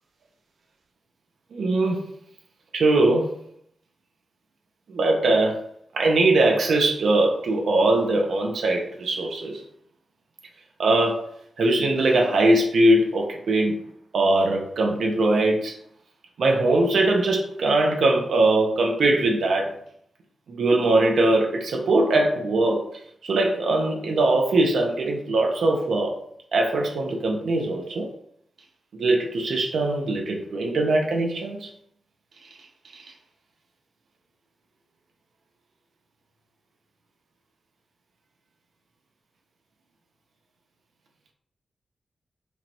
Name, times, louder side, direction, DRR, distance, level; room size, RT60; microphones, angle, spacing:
voice 1, 1.5-2.2 2.7-3.3 4.9-5.6 5.9-9.6 10.8-11.3 11.6-13.8 14.1-15.7 16.4-19.8 20.5-22.9 23.2-26.1 26.5-28.1 28.9-31.7, right 2 dB, 80° right, 1 dB, 1.0 m, -21 dB
5.0 x 3.0 x 2.7 m, 0.66 s
wide cardioid pair, 135°, 0 cm